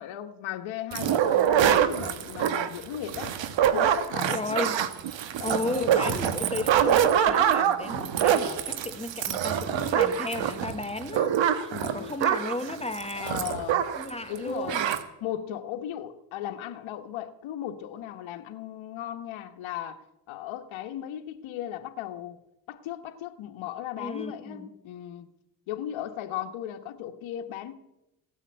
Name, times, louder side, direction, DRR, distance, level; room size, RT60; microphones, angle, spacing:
voice 1, 0.0-3.3 3.7-4.7 5.4-6.1 11.7-12.1 13.2-13.9 14.3-14.8 15.2-22.4 22.7-25.3 25.7-27.8, left 11 dB, 85° left, 1.3 m, -36 dB
sound 1, 0.9-14.1 14.4-14.5 14.7-15.0, right 9 dB, 70° right, 1.4 m, -25 dB
voice 2, 4.3-4.8 5.4-13.4 13.9-14.9 24.0-24.7, left 2 dB, 15° left, 1.2 m, -34 dB
16.5 x 10.0 x 8.0 m
cardioid pair, 95°, 46 cm